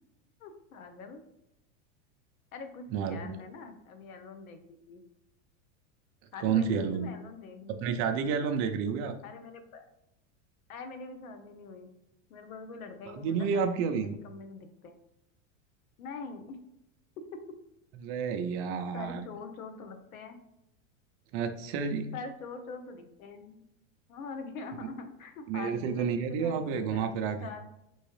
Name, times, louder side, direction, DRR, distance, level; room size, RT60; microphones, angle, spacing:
voice 1, 0.4-1.2 2.5-4.6 4.9-5.0 6.3-8.1 9.2-9.9 10.7-11.9 12.3-14.9 16.0-16.6 17.2-17.4 18.9-20.4 22.1-23.6 24.1-27.7, left 4 dB, 90° left, 7 dB, 0.9 m, -44 dB
voice 2, 2.9-3.4 6.4-7.1 7.8-9.1 13.1-14.2 18.0-19.2 21.3-22.1 25.5-27.4, right 6 dB, 35° right, 6 dB, 0.4 m, -30 dB
4.6 x 3.1 x 3.0 m, 0.85 s
supercardioid pair, 135°, 41 cm